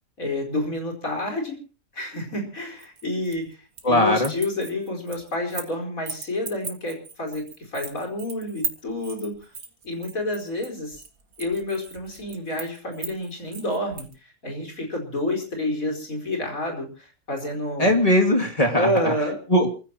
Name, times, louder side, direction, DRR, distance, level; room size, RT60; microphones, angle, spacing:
voice 1, 0.2-1.6 1.9-3.6 3.9-9.4 9.8-11.0 11.4-17.9 18.7-19.4, left 1 dB, 75° left, 2 dB, 5.2 m, -29 dB
sound 1, 2.8-3.9 4.2-5.7 6.1-14.1, right 5 dB, 80° right, 2.4 m, -37 dB
voice 2, 3.8-4.3 17.8-19.1 19.5-19.7, left 1 dB, 25° left, 2 dB, 2.6 m, -19 dB
28.0 x 15.0 x 2.9 m, 0.35 s
omnidirectional pair, 1.5 m